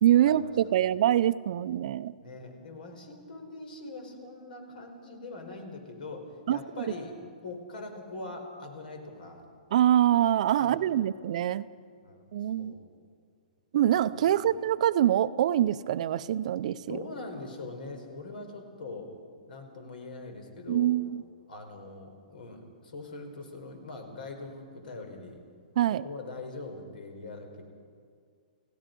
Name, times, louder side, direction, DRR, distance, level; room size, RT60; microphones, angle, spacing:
voice 1, 0.0-2.1 6.5-6.6 9.7-11.7 12.3-12.7 13.7-17.0 20.7-21.2 25.8-26.0, right 11 dB, 50° right, 15 dB, 0.6 m, -24 dB
voice 2, 2.2-7.1 7.4-9.4 10.6-10.9 12.0-12.3 12.6-12.8 14.3-14.4 16.9-19.1 19.5-20.9 21.5-25.4 26.0-27.6, left 3 dB, 80° left, 5 dB, 4.7 m, -42 dB
30.0 x 16.5 x 5.3 m, 2.1 s
hypercardioid pair, 160°, 5 cm